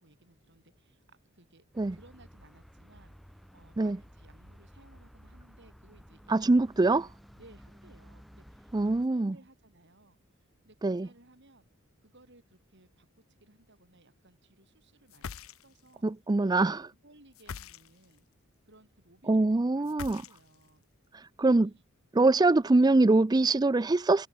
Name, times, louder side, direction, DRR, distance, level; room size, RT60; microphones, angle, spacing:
voice 1, 0.0-1.6 1.9-10.2 10.6-11.7 12.0-16.1 16.6-16.7 17.0-18.3 18.7-20.8 21.6-21.8, right 2 dB, 55° right, 7.9 m, -60 dB
sound 1, 1.7-9.1, equal, ahead, 2.8 m, -54 dB
voice 2, 6.3-7.0 8.7-9.3 10.8-11.1 16.0-16.8 19.3-20.2 21.1-21.7 22.2-24.3, right 2 dB, 20° right, 0.4 m, -24 dB
sound 2, 15.1-15.9 17.3-18.2 19.8-20.7, left 6 dB, 70° left, 0.6 m, -43 dB
head